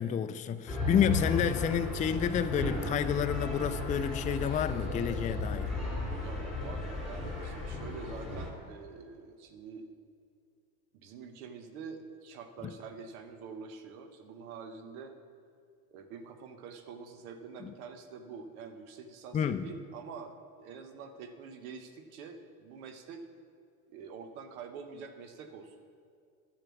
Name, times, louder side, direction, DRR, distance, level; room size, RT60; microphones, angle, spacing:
voice 1, 0.0-5.7 17.6-17.7 19.3-19.7, left 8 dB, 20° left, 10 dB, 0.3 m, -30 dB
sound 1, 0.7-8.5, left 2 dB, ahead, 3.1 m, -34 dB
voice 2, 6.1-9.9 10.9-15.1 15.9-20.3 20.6-23.2 23.9-25.8, right 5 dB, 85° right, 7 dB, 1.1 m, -46 dB
9.2 x 7.0 x 7.1 m, 2.3 s
supercardioid pair, 95°, 42 cm